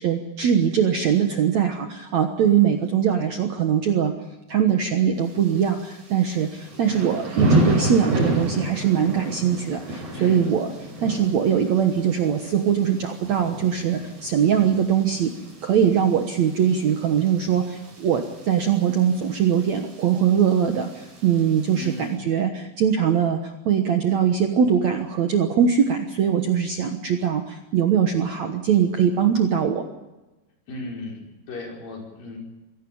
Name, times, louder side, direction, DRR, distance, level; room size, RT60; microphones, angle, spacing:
voice 1, 0.0-4.1 4.5-10.7 11.0-15.3 15.6-29.9, right 8 dB, 60° right, 5 dB, 1.9 m, -21 dB
Thunder / Rain, 5.2-22.1, right 1 dB, 85° right, 8.7 m, -31 dB
voice 2, 10.1-10.4 21.7-22.2 30.7-32.4, left 1 dB, 60° left, 0 dB, 6.8 m, -36 dB
24.0 x 17.0 x 7.1 m, 1.1 s
omnidirectional pair, 4.7 m